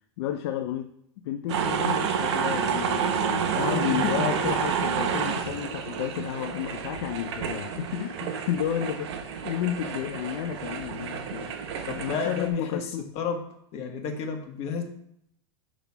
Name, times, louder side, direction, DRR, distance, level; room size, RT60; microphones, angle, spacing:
voice 1, 0.2-0.9 1.2-11.6 12.0-13.1, left 11 dB, 65° left, 7 dB, 0.5 m, -31 dB
sound 1, 1.5-12.5, right 7 dB, 70° right, 1.0 m, -29 dB
voice 2, 3.6-4.4 11.9-12.9 13.1-13.4 13.7-14.8, left 6 dB, 45° left, 3 dB, 1.4 m, -31 dB
7.1 x 3.8 x 4.7 m, 0.72 s
hypercardioid pair, 115°, 15 cm